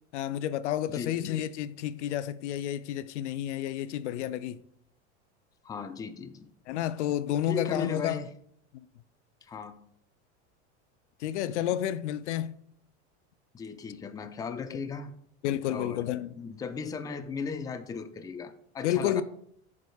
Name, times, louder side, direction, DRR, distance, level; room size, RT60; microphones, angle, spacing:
voice 1, 0.1-4.6 6.7-8.2 8.7-8.9 11.2-12.5 14.7-14.8 15.4-16.3 18.8-19.2, left 11 dB, 85° left, 0.5 m, -30 dB
voice 2, 5.6-6.5 7.5-8.3 9.4-9.8 13.5-15.1 15.7-16.1 16.4-19.2, left 5 dB, 10° left, 0.4 m, -36 dB
10.5 x 4.8 x 2.3 m
supercardioid pair, 110°, 34 cm